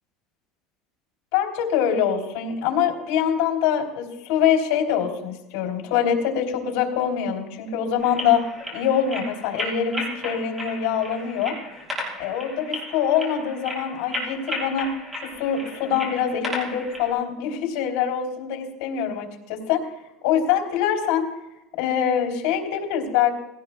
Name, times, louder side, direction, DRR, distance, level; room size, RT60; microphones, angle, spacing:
voice 1, 1.3-11.6 12.2-14.9 15.2-19.8 20.2-21.3 21.8-23.3, left 8 dB, 75° left, -1 dB, 3.2 m, -24 dB
sound 1, 8.0-17.1, left 1 dB, 10° right, 4.2 m, -34 dB
19.0 x 17.0 x 2.3 m, 0.93 s
cardioid pair, 160°, 0 cm